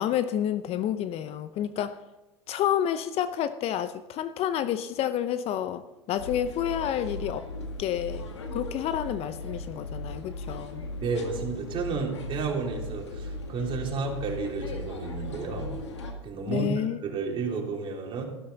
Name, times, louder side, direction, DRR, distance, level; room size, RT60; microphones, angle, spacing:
voice 1, 0.0-2.0 2.5-7.5 7.8-8.3 8.5-10.9 16.5-17.0, left 10 dB, 45° left, 0.8 m, -29 dB
sound 1, 6.2-16.1, left 1 dB, 85° left, 1.9 m, -37 dB
voice 2, 11.0-15.7 16.2-18.2, right 4 dB, 40° right, 3.6 m, -32 dB
13.0 x 12.5 x 4.1 m
hypercardioid pair, 85°, 14 cm